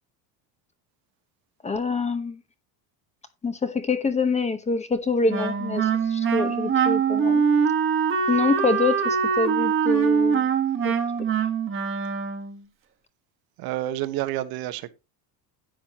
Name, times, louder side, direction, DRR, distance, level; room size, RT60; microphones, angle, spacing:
voice 1, 1.6-2.4 3.4-7.4 8.3-10.4 10.8-10.9, left 4 dB, 15° left, 0.9 m, -25 dB
Wind instrument woodwind instrument, 5.3-12.6, right 6 dB, 25° right, 1.4 m, -23 dB
voice 2, 13.6-14.9, right 14 dB, 50° right, 1.1 m, -29 dB
10.0 x 8.2 x 2.9 m
cardioid pair, 145°, 46 cm